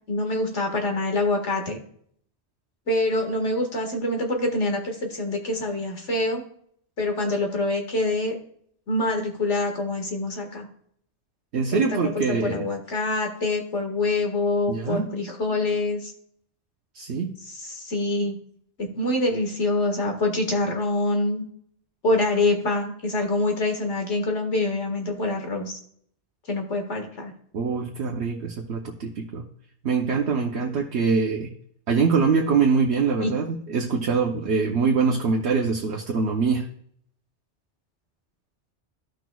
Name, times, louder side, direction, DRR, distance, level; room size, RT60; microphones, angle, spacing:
voice 1, 0.1-1.8 2.9-6.4 7.0-8.3 8.9-10.7 11.7-16.1 17.4-18.4 18.8-21.4 22.0-25.8 26.5-27.3 33.2-33.3, left 2 dB, 80° left, 3 dB, 2.0 m, -25 dB
voice 2, 11.5-12.6 14.7-15.1 17.0-17.3 27.5-29.4 29.8-31.5 31.9-36.7, right 5 dB, 70° right, 2 dB, 1.1 m, -24 dB
14.5 x 6.1 x 2.3 m, 0.65 s
omnidirectional pair, 1.2 m